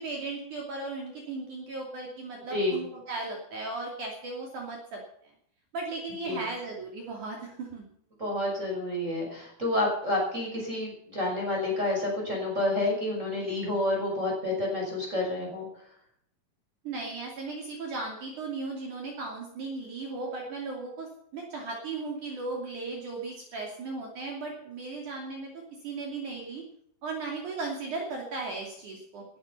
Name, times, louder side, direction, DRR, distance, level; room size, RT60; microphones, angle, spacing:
voice 1, 0.0-5.0 5.7-7.8 16.8-25.5 25.8-26.6 27.0-29.2, right 3 dB, 55° right, -1 dB, 4.2 m, -36 dB
voice 2, 8.2-15.7, left 1 dB, 20° right, -2 dB, 6.1 m, -29 dB
20.5 x 11.0 x 5.7 m, 0.69 s
omnidirectional pair, 4.2 m